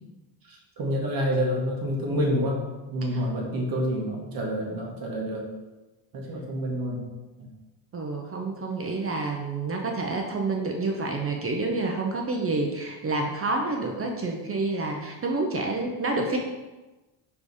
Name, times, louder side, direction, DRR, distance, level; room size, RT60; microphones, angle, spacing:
voice 1, 0.4-2.6 2.9-5.5 6.1-7.1 7.4-7.5, equal, 45° right, -1 dB, 1.6 m, -28 dB
voice 2, 7.9-16.4, right 3 dB, 30° right, 2 dB, 0.6 m, -28 dB
5.1 x 4.1 x 4.8 m, 1.1 s
cardioid pair, 145°, 49 cm